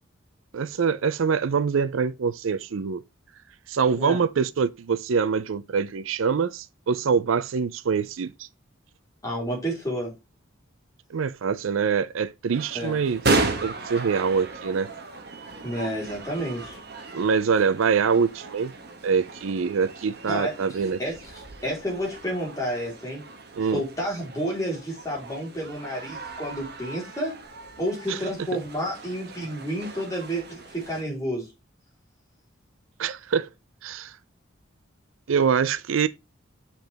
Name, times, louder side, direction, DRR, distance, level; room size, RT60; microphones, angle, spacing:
voice 1, 0.5-3.0 3.7-8.3 11.1-13.2 13.6-14.9 17.1-18.7 19.0-21.0 23.5-23.8 28.1-28.2 33.0-33.5 33.8-34.1 35.3-36.1, right 6 dB, 75° right, 0.5 m, -24 dB
voice 2, 9.2-10.2 12.7-13.0 15.6-16.8 20.3-20.5 21.0-21.2 21.6-23.3 23.7-27.4 27.8-31.5, equal, 15° left, 3.9 m, -30 dB
sound 1, 12.5-31.0, right 3 dB, 50° right, 1.2 m, -35 dB
6.9 x 5.8 x 3.4 m
head